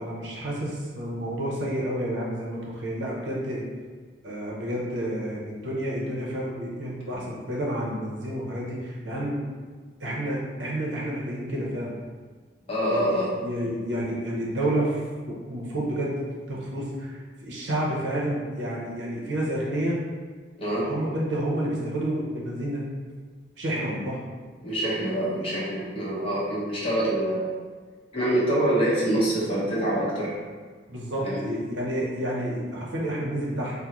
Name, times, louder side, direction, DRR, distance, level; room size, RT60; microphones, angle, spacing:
voice 1, 0.0-3.6 4.2-9.4 10.0-12.0 12.9-15.0 15.3-16.2 16.5-20.0 20.8-22.8 23.6-24.2 25.2-25.3 30.9-33.7, right 1 dB, 70° right, -4 dB, 0.6 m, -30 dB
voice 2, 12.7-13.3 20.6-20.9 24.6-27.5 28.1-30.4 31.2-31.4, right 1 dB, 30° left, -7 dB, 0.7 m, -25 dB
3.6 x 2.0 x 2.9 m, 1.5 s
head